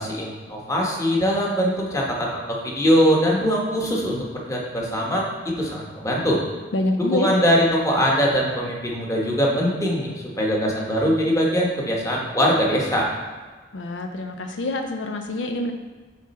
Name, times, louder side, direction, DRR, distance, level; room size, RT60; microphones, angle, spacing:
voice 1, 0.0-4.2 4.5-6.4 7.0-13.1, equal, 20° left, -2 dB, 1.2 m, -22 dB
voice 2, 6.7-7.3 13.7-15.7, left 2 dB, 80° left, 4 dB, 0.5 m, -26 dB
7.4 x 3.8 x 4.2 m, 1.4 s
head